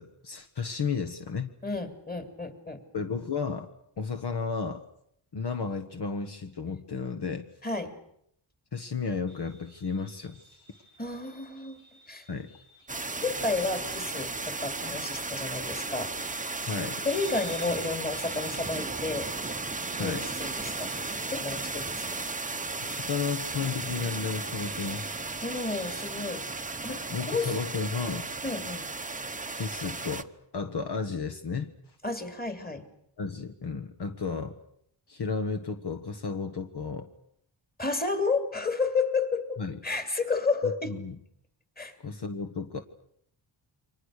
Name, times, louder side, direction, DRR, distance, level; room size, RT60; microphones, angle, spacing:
voice 1, 0.0-1.5 2.9-3.7 4.0-4.9 5.3-7.5 8.7-10.6 12.3-12.5 16.6-17.0 20.0-20.3 22.8-25.2 27.1-28.3 29.5-30.3 30.5-31.7 33.2-34.5 35.1-37.1 39.6-39.8 40.9-41.1 42.0-42.8, left 5 dB, 55° left, 7 dB, 1.5 m, -33 dB
voice 2, 1.6-2.8 7.6-8.0 11.0-11.8 12.1-12.3 13.2-16.1 17.0-19.3 19.9-20.9 21.3-22.2 25.4-26.5 26.8-27.6 28.4-28.9 32.0-32.9 37.8-41.0 41.8-42.0, left 3 dB, 20° left, 7 dB, 3.0 m, -31 dB
sound 1, 9.3-26.0, left 1 dB, 85° left, 4.3 m, -55 dB
sound 2, 12.9-30.2, right 3 dB, 15° right, 1.0 m, -35 dB
29.5 x 25.0 x 6.6 m, 0.72 s
wide cardioid pair, 140°, 49 cm